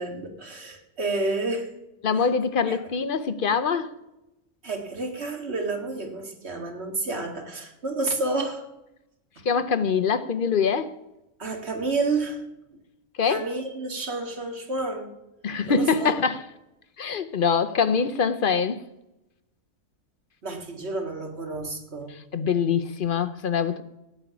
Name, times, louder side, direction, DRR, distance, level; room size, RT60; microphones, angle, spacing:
voice 1, 0.0-1.7 2.7-2.8 4.6-8.7 11.4-12.4 13.2-15.1 15.7-16.1 20.4-22.1, right 3 dB, 50° right, 3 dB, 2.2 m, -30 dB
voice 2, 2.0-3.9 9.4-10.9 13.2-13.4 15.4-16.4 17.0-18.8 22.3-23.8, left 6 dB, 50° left, 12 dB, 0.8 m, -24 dB
16.5 x 5.6 x 9.3 m, 0.93 s
omnidirectional pair, 1.4 m